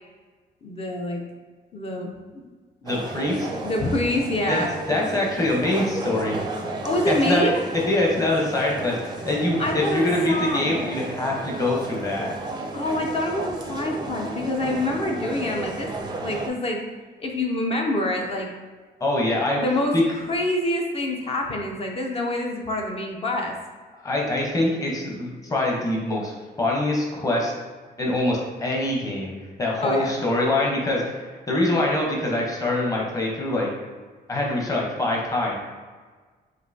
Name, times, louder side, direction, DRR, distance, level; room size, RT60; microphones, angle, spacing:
voice 1, 0.6-1.2 1.7-2.1 2.3-2.4 3.6-4.7 6.8-7.6 9.6-10.7 12.7-15.9 16.2-16.8 17.2-18.5 19.5-19.9 20.3-23.5 29.8-30.1, left 1 dB, 35° left, 1 dB, 0.5 m, -26 dB
voice 2, 2.8-3.5 4.5-4.6 4.9-6.4 7.1-7.5 7.9-12.3 14.6-14.7 19.0-19.6 19.9-20.0 24.0-27.5 28.0-29.3 29.6-33.7 34.3-35.5, left 1 dB, 20° left, -2 dB, 0.8 m, -24 dB
sound 1, 2.9-16.5, right 2 dB, 25° right, 0.4 m, -33 dB
5.3 x 2.9 x 2.7 m, 1.4 s
cardioid pair, 160°, 17 cm